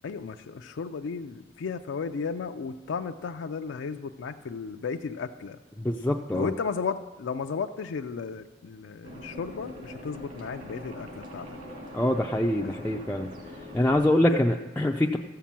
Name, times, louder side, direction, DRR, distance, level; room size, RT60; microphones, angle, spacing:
voice 1, 0.0-5.6 6.3-11.6 12.6-12.7 14.3-14.4, left 5 dB, 85° left, 6 dB, 0.4 m, -34 dB
voice 2, 5.8-6.5 11.9-13.3 13.7-15.2, left 1 dB, 10° left, 0 dB, 0.3 m, -24 dB
sound 1, 9.0-14.0, left 1 dB, 45° right, 1.9 m, -43 dB
14.0 x 5.7 x 7.4 m, 1.3 s
head